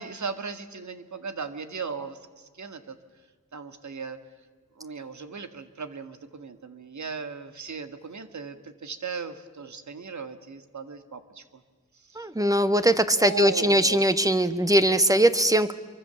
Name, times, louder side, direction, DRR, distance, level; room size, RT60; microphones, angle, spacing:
voice 1, 0.0-3.0 3.5-4.2 4.8-11.6 11.9-12.3 13.2-14.0, right 5 dB, 75° right, 9 dB, 2.0 m, -37 dB
voice 2, 12.1-15.7, right 1 dB, 10° right, 11 dB, 1.5 m, -21 dB
27.5 x 24.0 x 7.1 m, 1.5 s
wide cardioid pair, 70°, 29 cm